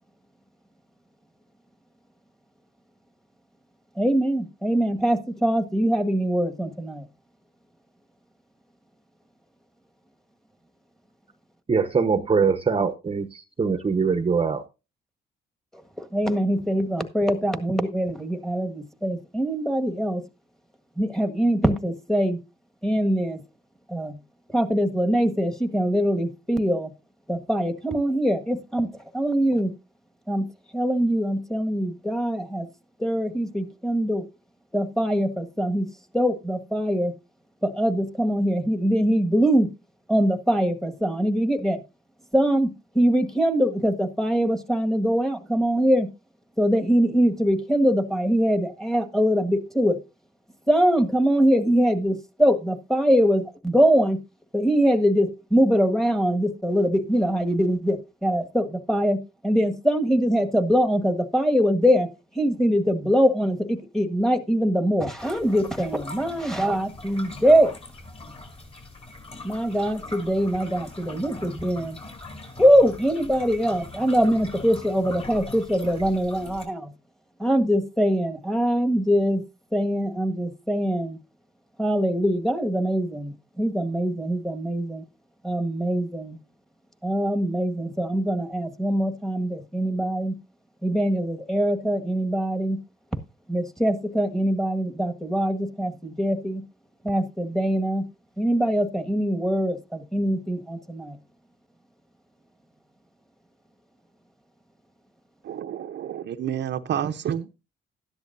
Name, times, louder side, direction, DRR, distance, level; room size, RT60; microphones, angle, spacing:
voice 1, 4.0-7.0 16.0-20.2 21.0-22.4 22.8-23.4 23.9-24.2 24.5-26.9 27.3-28.9 29.1-29.7 30.3-30.4 30.7-32.7 33.0-34.2 34.7-35.9 36.1-37.1 37.6-39.7 40.1-41.8 42.3-46.1 46.6-50.0 50.7-54.2 54.5-59.2 59.4-62.1 62.4-67.8 69.4-72.0 72.6-76.9 77.4-79.4 79.7-81.2 81.8-85.0 85.4-86.4 87.0-90.4 90.8-92.8 93.5-96.6 97.0-98.0 98.4-101.2, equal, ahead, 1.7 m, -23 dB
voice 2, 11.7-14.6, right 5 dB, 30° right, 0.9 m, -23 dB
sound 1, 65.2-76.6, left 2 dB, 30° left, 4.6 m, -41 dB
voice 3, 105.4-107.5, right 9 dB, 60° right, 0.8 m, -29 dB
13.0 x 10.5 x 2.6 m
cardioid pair, 90°, 20 cm